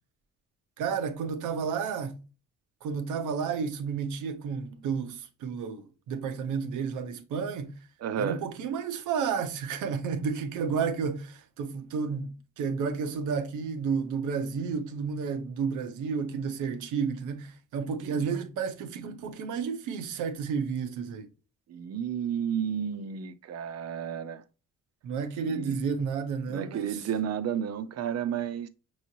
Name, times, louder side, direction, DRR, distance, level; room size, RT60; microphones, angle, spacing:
voice 1, 0.8-2.2 2.8-7.8 8.2-21.3 25.0-27.0, right 6 dB, 90° right, 0.9 m, -31 dB
voice 2, 8.0-8.4 17.8-18.2 21.7-24.4 25.4-25.8 26.5-28.7, right 8 dB, 55° right, 0.7 m, -32 dB
5.6 x 3.1 x 2.7 m
cardioid pair, 90°, 30 cm